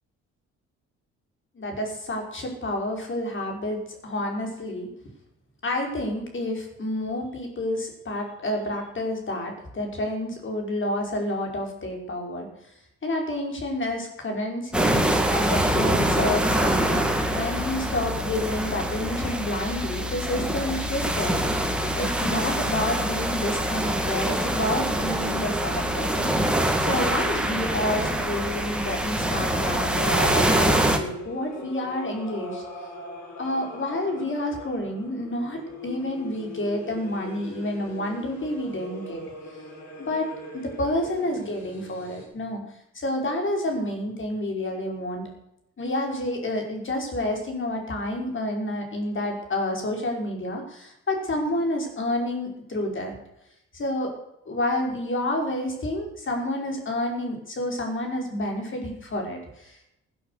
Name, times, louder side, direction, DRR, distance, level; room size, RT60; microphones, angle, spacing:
voice 1, 1.6-4.9 5.6-12.5 13.0-17.0 17.3-26.2 26.8-32.6 33.4-39.2 40.0-40.3 40.5-42.6 42.9-45.2 45.8-53.1 53.7-54.2 54.5-59.9, left 1 dB, 40° left, 2 dB, 5.3 m, -29 dB
sound 1, 14.7-31.0, right 1 dB, 5° right, 2.4 m, -25 dB
sound 2, 27.3-42.3, left 1 dB, 65° left, 6.6 m, -41 dB
16.0 x 9.4 x 6.7 m, 0.81 s
cardioid pair, 90°, 30 cm